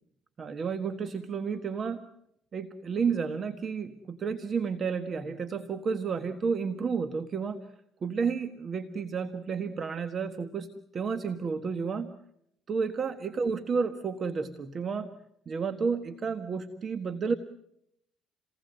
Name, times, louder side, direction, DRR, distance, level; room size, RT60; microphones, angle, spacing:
voice 1, 0.4-2.1 2.5-7.7 8.0-12.2 12.7-15.1 15.4-17.3, right 5 dB, 40° right, 9 dB, 1.6 m, -31 dB
29.5 x 19.5 x 7.9 m, 0.74 s
cardioid pair, 110°, 0 cm